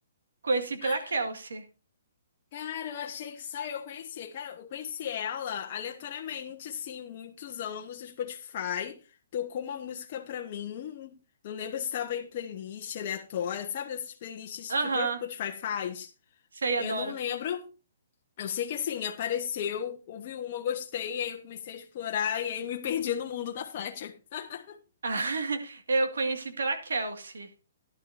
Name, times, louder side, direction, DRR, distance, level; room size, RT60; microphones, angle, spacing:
voice 1, 0.4-1.6 14.7-15.2 16.5-17.1 25.0-27.5, right 3 dB, 80° right, 2.0 m, -29 dB
voice 2, 2.5-9.0 9.3-11.1 11.4-16.1 16.8-17.7 18.4-24.8, left 9 dB, 45° left, 1.1 m, -34 dB
13.5 x 11.5 x 2.7 m
hypercardioid pair, 145°, 0 cm